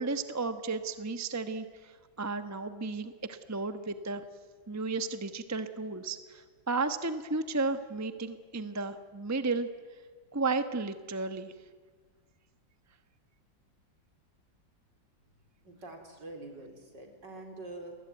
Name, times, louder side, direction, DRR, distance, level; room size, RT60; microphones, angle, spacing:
voice 1, 0.0-4.2 4.7-9.7 10.3-11.5, right 3 dB, 10° right, 9 dB, 0.8 m, -33 dB
voice 2, 15.6-18.0, right 2 dB, 65° right, 3 dB, 4.6 m, -45 dB
29.0 x 21.0 x 9.3 m, 1.5 s
omnidirectional pair, 2.1 m